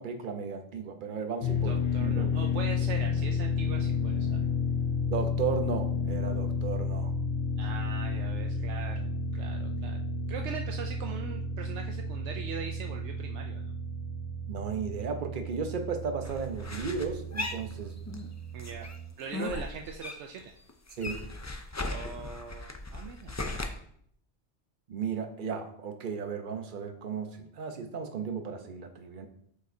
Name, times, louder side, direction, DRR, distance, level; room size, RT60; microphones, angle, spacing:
voice 1, 0.0-1.7 2.0-2.4 5.1-7.1 14.5-17.9 21.0-21.1 24.9-29.3, right 6 dB, 50° right, 6 dB, 0.9 m, -35 dB
sound 1, 1.4-19.1, left 3 dB, 60° left, 0.9 m, -32 dB
voice 2, 1.6-4.4 7.6-10.0 10.3-13.7 18.5-18.9 19.2-20.5 21.8-23.4, right 6 dB, 80° right, 3 dB, 0.9 m, -41 dB
sound 2, 16.2-18.3 18.6-20.4 20.7-23.7, left 2 dB, 25° left, 0.3 m, -37 dB
7.7 x 5.2 x 2.7 m, 0.67 s
omnidirectional pair, 1.2 m